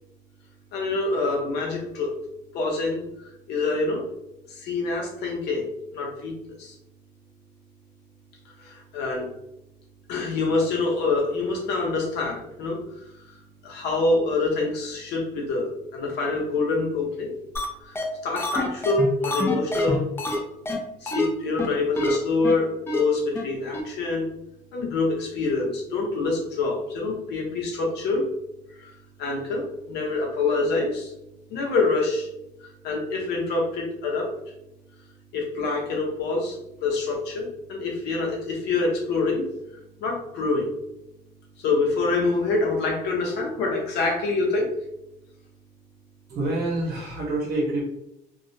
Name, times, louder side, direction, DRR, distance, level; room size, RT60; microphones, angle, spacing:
voice 1, 0.7-2.2 2.5-4.0 4.5-6.3 6.6-6.7 8.6-9.3 10.1-12.8 13.2-13.4 13.6-17.3 17.8-20.1 21.0-24.3 24.7-28.3 28.7-28.9 29.2-31.1 31.5-32.3 32.6-34.3 35.3-39.5 40.0-40.7 41.6-44.7, left 3 dB, 80° left, 0 dB, 0.8 m, -26 dB
sound 1, 17.6-17.7 18.0-18.1 18.4-20.4 20.7-20.8 21.1-21.3 21.6-21.7 22.0-22.2 22.4-22.5 22.9-23.0 23.4-23.5 23.7-23.8, left 1 dB, 15° left, 0.4 m, -26 dB
voice 2, 46.3-47.8, right 2 dB, 70° right, -3 dB, 0.7 m, -27 dB
2.3 x 2.0 x 2.6 m, 0.85 s
cardioid pair, 110°, 17 cm